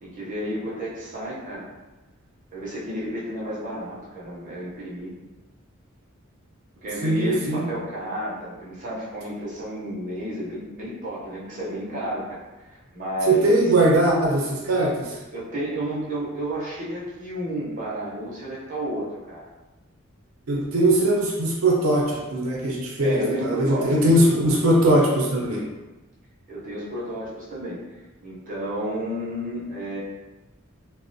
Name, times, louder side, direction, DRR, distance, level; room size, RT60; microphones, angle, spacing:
voice 1, 0.0-1.7 2.5-5.1 6.8-12.4 12.9-13.7 15.3-19.4 23.0-24.0 26.5-27.8 28.2-30.0, equal, 40° right, -7 dB, 0.6 m, -31 dB
voice 2, 7.0-7.7 13.3-15.1 20.5-25.7, right 1 dB, 85° right, -3 dB, 0.5 m, -20 dB
2.3 x 2.1 x 2.6 m, 1.1 s
head